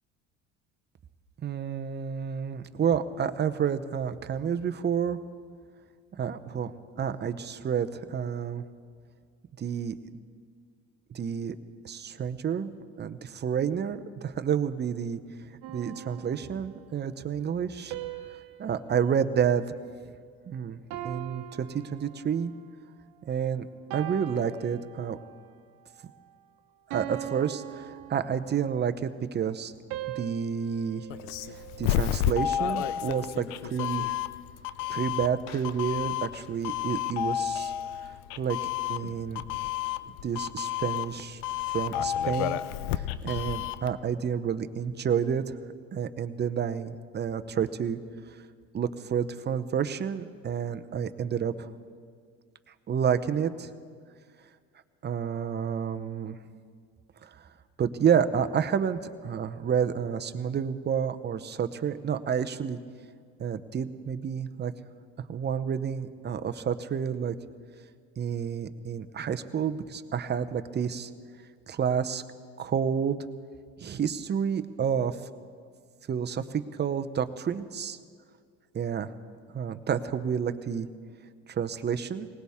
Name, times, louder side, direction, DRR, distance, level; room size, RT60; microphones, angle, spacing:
voice 1, 1.4-5.2 6.2-6.7 7.0-8.6 9.6-9.9 11.1-11.6 11.8-12.7 13.0-15.2 15.7-17.9 18.6-19.6 20.5-22.5 23.3-23.7 23.9-25.2 26.9-29.7 30.1-31.1 31.5-34.1 34.9-37.7 38.0-38.6 38.9-39.4 40.2-41.4 41.7-42.6 42.9-45.6 45.9-48.0 48.7-51.7 52.9-53.7 55.0-56.4 57.2-57.5 57.8-62.8 63.4-64.7 65.3-67.4 68.2-71.1 71.7-72.2 72.6-73.2 73.8-75.2 76.1-78.0 78.7-79.1 79.5-80.9 81.5-82.3, right 7 dB, 30° right, 10 dB, 0.8 m, -29 dB
sound 1, 15.6-16.9 17.9-20.4 20.9-22.6 23.2-23.4 23.9-25.4 25.9-26.2 26.9-28.8 29.9-32.3, right 12 dB, 80° right, 1.1 m, -42 dB
Doorbell, 31.1-43.9, left 12 dB, 80° left, 0.6 m, -31 dB
19.5 x 18.5 x 3.6 m, 2.1 s
supercardioid pair, 85°, 32 cm